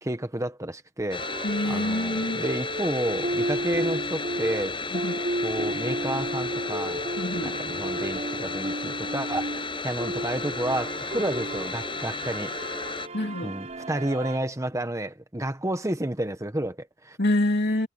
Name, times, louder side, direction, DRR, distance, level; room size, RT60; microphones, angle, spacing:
voice 1, 0.0-1.2 1.7-4.8 5.4-7.0 7.4-12.5 13.4-17.2, right 1 dB, 15° right, 1.5 m, -31 dB
sound 1, 1.1-13.1, left 4 dB, 25° left, 7.6 m, -34 dB
sound 2, 1.2-14.4, right 1 dB, 40° right, 3.7 m, -33 dB
voice 2, 1.4-2.4 4.9-5.2 7.2-7.6 13.1-13.5 17.2-17.9, left 1 dB, 60° left, 3.1 m, -26 dB
head